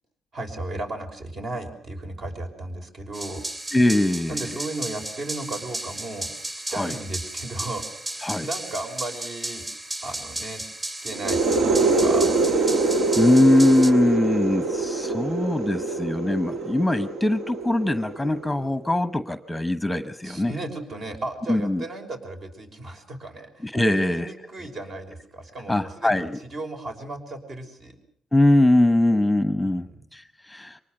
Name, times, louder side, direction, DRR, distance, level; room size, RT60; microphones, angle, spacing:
voice 1, 0.3-3.4 4.3-6.3 6.7-9.6 10.0-12.3 20.2-28.0 29.6-30.0, right 2 dB, 50° right, 4 dB, 5.8 m, -35 dB
sound 1, 3.1-13.9, right 1 dB, 30° right, 3.0 m, -34 dB
voice 2, 3.7-4.4 6.7-6.9 8.2-8.5 13.2-20.5 21.5-21.8 23.6-24.3 25.7-26.4 28.3-29.9 30.1-30.8, left 1 dB, 5° left, 12 dB, 1.1 m, -21 dB
sound 2, 11.1-18.7, right 3 dB, 70° right, 1.7 m, -24 dB
24.0 x 19.5 x 7.8 m, 0.62 s
cardioid pair, 90°, 0 cm